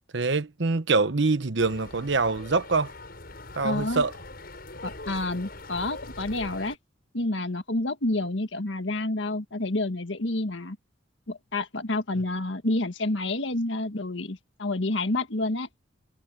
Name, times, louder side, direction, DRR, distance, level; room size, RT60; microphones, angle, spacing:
voice 1, 0.1-2.9 3.5-4.1, right 3 dB, 65° right, 1.0 m, -24 dB
sound 1, 1.6-6.8, left 2 dB, 50° left, 8.0 m, -42 dB
voice 2, 3.6-4.0 4.8-6.8 7.1-10.8 11.3-15.7, left 2 dB, 70° left, 1.6 m, -29 dB
head